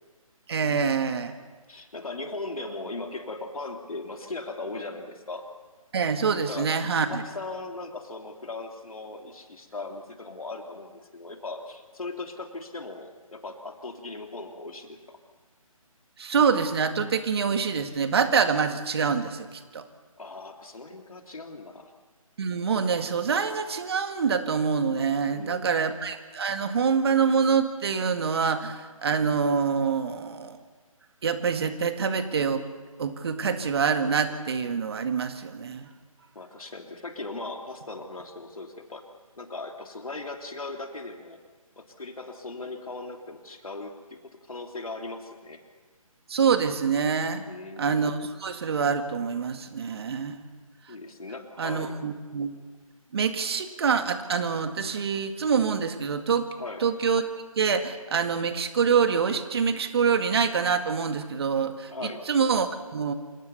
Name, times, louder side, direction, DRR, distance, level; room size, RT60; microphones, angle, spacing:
voice 1, 0.5-1.3 5.9-7.2 16.2-19.8 22.4-30.6 31.2-32.6 33.0-35.9 46.3-47.4 47.8-50.4 51.6-52.5 53.1-56.5 56.8-57.2 57.6-63.1, right 6 dB, 45° right, 8 dB, 2.0 m, -26 dB
voice 2, 1.7-5.4 6.5-6.7 7.0-15.2 20.2-21.9 25.3-25.7 36.3-39.0 39.4-41.4 41.8-45.6 47.5-47.9 50.9-52.0 56.6-56.8 61.9-62.2, left 3 dB, 75° left, 3 dB, 3.3 m, -38 dB
27.5 x 17.5 x 7.1 m, 1.4 s
figure-of-eight pair, 150°, 18 cm